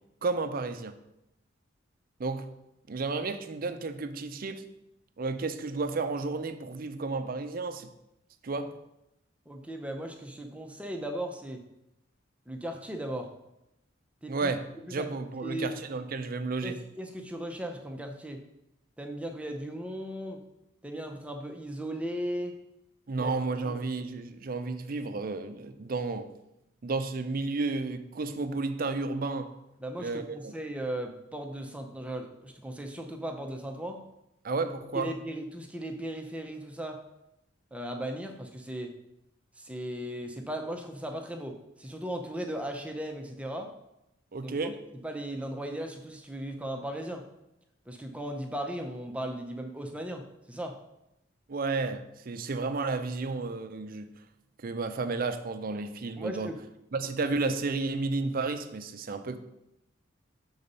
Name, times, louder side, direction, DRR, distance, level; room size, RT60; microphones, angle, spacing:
voice 1, 0.2-0.9 2.2-2.5 2.9-4.6 5.2-7.9 8.4-8.7 14.3-14.6 14.9-16.8 23.1-26.3 26.8-29.5 30.0-30.5 34.4-35.1 44.3-44.8 51.5-54.1 54.6-56.5 56.9-59.4, right 3 dB, 50° right, 9 dB, 0.5 m, -32 dB
voice 2, 9.5-11.6 12.5-13.3 14.2-14.5 14.9-15.1 15.4-15.7 16.6-18.4 19.0-20.4 20.8-22.5 23.2-23.3 23.6-23.8 29.8-34.0 34.9-37.0 37.7-38.9 39.6-43.7 44.4-44.5 45.0-47.2 47.9-50.7 56.2-56.6, right 1 dB, 5° right, 3 dB, 0.6 m, -37 dB
6.7 x 3.9 x 5.4 m, 0.87 s
head